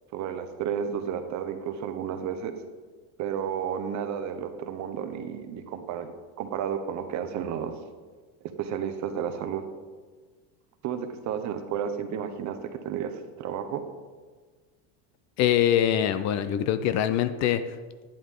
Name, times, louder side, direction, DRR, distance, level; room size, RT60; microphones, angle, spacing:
voice 1, 0.1-2.6 3.2-6.1 6.4-7.7 8.6-9.6 10.8-13.1 13.4-13.8, right 8 dB, 45° right, 8 dB, 1.0 m, -32 dB
voice 2, 15.4-17.6, left 10 dB, 45° left, 12 dB, 0.6 m, -23 dB
11.5 x 8.7 x 3.7 m, 1.4 s
supercardioid pair, 130°, 40 cm